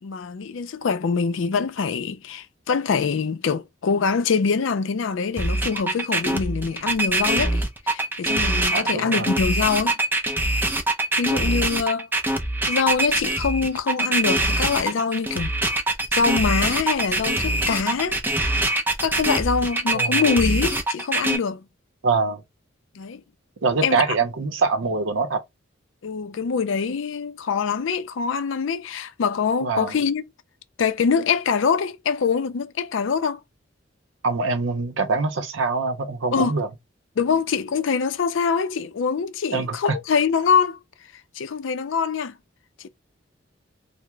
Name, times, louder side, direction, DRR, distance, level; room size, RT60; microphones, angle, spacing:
voice 1, 0.0-10.0 11.2-12.1 12.7-15.5 16.1-18.2 19.0-21.6 22.9-23.2 23.8-24.2 26.0-30.2 30.8-33.4 36.3-36.6 37.2-40.8 41.3-42.3 42.8-42.9, left 5 dB, 75° left, 0.4 m, -24 dB
sound 1, 5.4-21.4, right 2 dB, 10° right, 0.5 m, -23 dB
voice 2, 8.7-9.3 19.9-20.3 22.0-22.4 23.6-25.4 29.6-30.0 34.2-36.7 39.5-40.0, right 4 dB, 80° right, 0.6 m, -24 dB
2.9 x 2.0 x 3.3 m
head